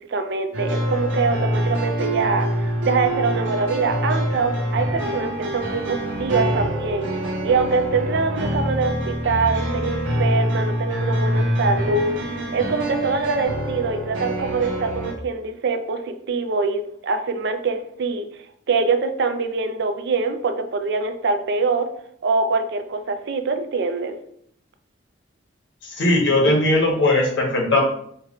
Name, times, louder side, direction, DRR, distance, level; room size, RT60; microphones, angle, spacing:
voice 1, 0.1-7.1 7.4-12.2 12.5-18.3 18.7-21.9 22.2-24.1, right 4 dB, 65° right, 8 dB, 0.5 m, -24 dB
sound 1, 0.5-15.1, right 1 dB, 80° right, 1.0 m, -25 dB
voice 2, 26.0-27.8, left 2 dB, 75° left, -1 dB, 1.3 m, -18 dB
4.5 x 2.2 x 3.6 m, 0.65 s
head